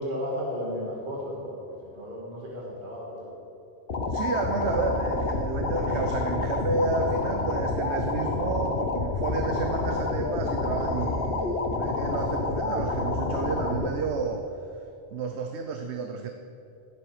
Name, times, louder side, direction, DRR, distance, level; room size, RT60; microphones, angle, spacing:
voice 1, 0.0-3.3, equal, 50° right, -4 dB, 2.1 m, -34 dB
sound 1, 3.9-13.9, left 3 dB, 60° left, 1.2 m, -28 dB
voice 2, 4.1-14.5 15.1-16.3, right 4 dB, 80° right, 5 dB, 1.0 m, -31 dB
16.0 x 7.8 x 4.9 m, 2.8 s
omnidirectional pair, 1.1 m